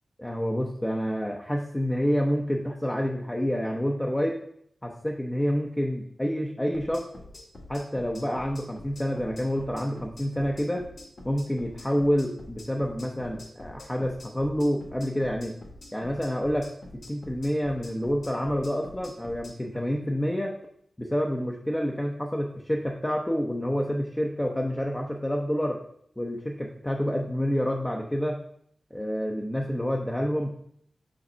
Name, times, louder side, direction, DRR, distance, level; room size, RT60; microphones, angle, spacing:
voice 1, 0.2-4.4 4.8-7.0 7.7-10.9 11.2-15.6 15.9-20.5 21.0-25.8 26.2-28.4 28.9-30.5, equal, 10° left, 0 dB, 0.7 m, -28 dB
sound 1, 6.7-19.5, left 1 dB, 60° left, 1.7 m, -46 dB
5.2 x 4.0 x 5.4 m, 0.68 s
cardioid pair, 70°, 0 cm